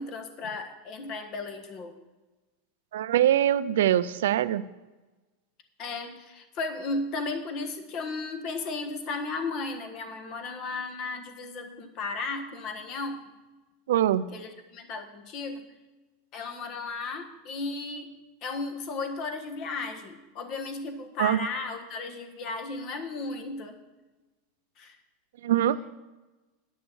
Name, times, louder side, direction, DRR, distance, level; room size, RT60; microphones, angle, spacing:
voice 1, 0.0-1.9 5.8-13.2 14.3-15.7 16.3-18.2 18.4-23.8 24.8-25.0, left 3 dB, 40° left, 6 dB, 1.3 m, -35 dB
voice 2, 2.9-4.7 13.9-14.3 21.2-21.4 25.4-25.8, right 11 dB, 85° right, 16 dB, 0.4 m, -23 dB
10.0 x 6.4 x 7.0 m, 1.1 s
supercardioid pair, 150°, 0 cm